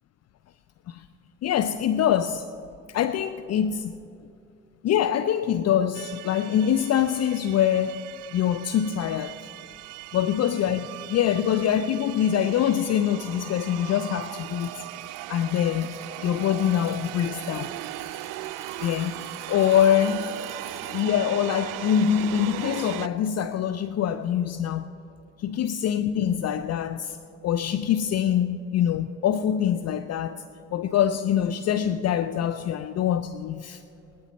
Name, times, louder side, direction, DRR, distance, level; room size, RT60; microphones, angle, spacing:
voice 1, 1.4-2.5 2.9-3.9 4.8-9.4 10.1-14.9 15.3-16.0 16.2-17.7 18.8-19.2 19.5-20.2 20.9-24.9 25.4-27.2 27.4-30.4 30.7-33.8, left 9 dB, 45° left, 0.5 m, -24 dB
sound 1, 5.9-23.1, right 16 dB, 65° right, 0.5 m, -38 dB
sound 2, 14.3-21.1, equal, 20° left, 4.4 m, -51 dB
18.0 x 13.0 x 4.1 m
hypercardioid pair, 55°, 35 cm